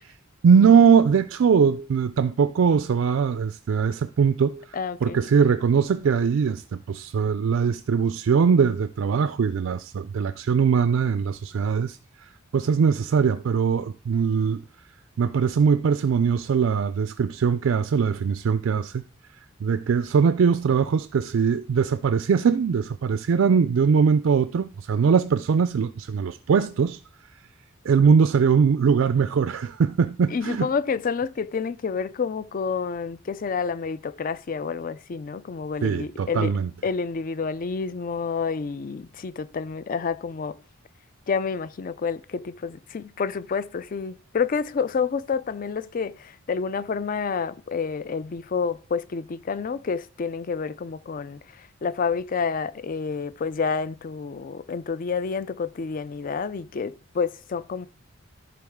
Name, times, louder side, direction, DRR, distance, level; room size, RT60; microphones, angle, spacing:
voice 1, 0.4-14.6 15.2-19.0 19.6-27.0 27.8-30.7 35.8-36.7, right 6 dB, 65° right, 0.4 m, -21 dB
voice 2, 4.7-5.2 30.3-36.6 36.8-40.6 41.3-57.9, left 5 dB, 40° left, 0.4 m, -29 dB
13.5 x 4.6 x 3.6 m
head